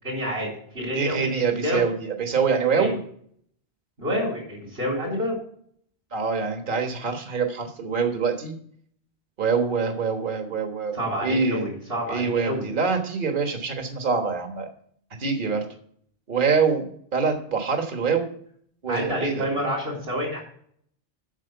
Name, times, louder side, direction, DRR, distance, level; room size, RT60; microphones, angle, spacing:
voice 1, 0.0-0.5 0.7-1.8 2.8-2.9 4.0-5.4 10.9-12.6 18.9-20.4, equal, 80° right, -7 dB, 4.1 m, -28 dB
voice 2, 0.9-3.0 6.1-8.6 9.4-11.0 11.2-11.6 12.1-14.7 15.2-15.6 16.3-18.3 18.8-19.5, right 5 dB, 55° right, 4 dB, 1.5 m, -25 dB
9.1 x 6.2 x 6.6 m, 0.63 s
omnidirectional pair, 1.0 m